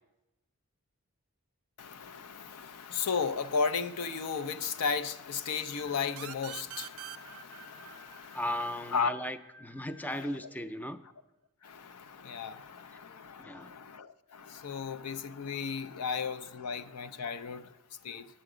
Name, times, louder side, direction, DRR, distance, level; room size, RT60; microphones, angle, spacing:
voice 1, 1.8-8.4 8.9-9.1 10.2-10.3 11.6-17.7 18.0-18.3, left 5 dB, 90° left, 0.5 m, -35 dB
sound 1, 5.8-10.7, left 3 dB, 50° left, 1.2 m, -57 dB
sound 2, 6.2-9.6, right 13 dB, 70° right, 0.4 m, -46 dB
voice 2, 8.3-11.0 13.4-13.7, left 1 dB, 5° left, 0.3 m, -36 dB
10.0 x 7.7 x 4.9 m
head